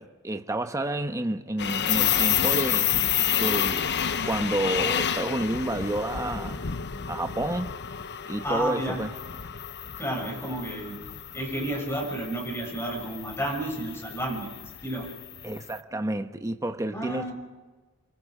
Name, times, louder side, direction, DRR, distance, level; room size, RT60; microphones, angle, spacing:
voice 1, 0.0-2.9 3.3-6.6 7.1-7.7 8.3-9.1 15.4-17.3, right 1 dB, 15° right, 1.0 m, -30 dB
sound 1, 1.6-15.6, left 9 dB, 50° left, 0.8 m, -29 dB
voice 2, 8.4-9.0 10.0-11.0 11.3-15.1 16.9-17.3, right 1 dB, 10° left, 6.9 m, -31 dB
27.0 x 23.5 x 5.0 m
head